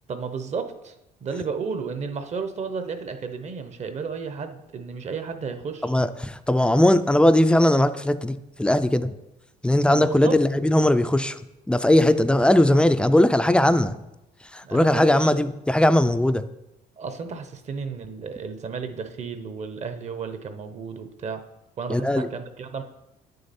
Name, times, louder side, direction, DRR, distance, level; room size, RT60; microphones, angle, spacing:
voice 1, 0.1-1.0 1.2-5.9 9.9-10.4 14.6-15.4 17.0-21.4 21.8-22.8, right 5 dB, 40° right, 9 dB, 0.8 m, -33 dB
voice 2, 5.8-9.1 9.6-11.4 11.7-14.0 14.5-16.4 21.9-22.3, left 1 dB, 5° left, 12 dB, 0.4 m, -19 dB
8.9 x 6.6 x 4.2 m, 0.91 s
cardioid pair, 110°, 17 cm